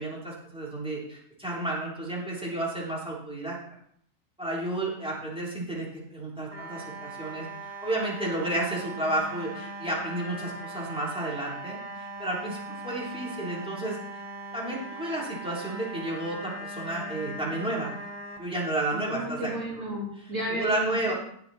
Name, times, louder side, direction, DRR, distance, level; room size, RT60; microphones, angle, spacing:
voice 1, 0.0-3.6 4.4-12.6 12.8-14.2 14.5-17.9 18.4-19.5 20.5-21.1, right 1 dB, 5° right, -6 dB, 3.6 m, -32 dB
sound 1, 6.5-18.4, right 2 dB, 25° right, 1.5 m, -40 dB
voice 2, 18.9-21.1, right 1 dB, 50° right, -4 dB, 3.9 m, -33 dB
17.5 x 5.9 x 4.4 m, 0.65 s
omnidirectional pair, 1.7 m